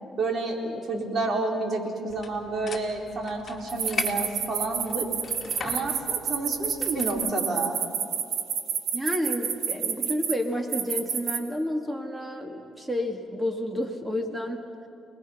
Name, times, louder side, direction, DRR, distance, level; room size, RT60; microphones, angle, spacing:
voice 1, 0.2-5.1 5.6-7.8, right 2 dB, 50° right, 1 dB, 4.1 m, -30 dB
sound 1, 2.1-7.3, left 5 dB, 35° left, 2.2 m, -39 dB
sound 2, 3.7-10.3 10.7-11.4, right 8 dB, 80° right, 1.8 m, -28 dB
voice 2, 8.9-14.9, left 1 dB, 15° right, 4 dB, 2.3 m, -30 dB
29.0 x 20.5 x 5.8 m, 2.5 s
cardioid pair, 90°, 0 cm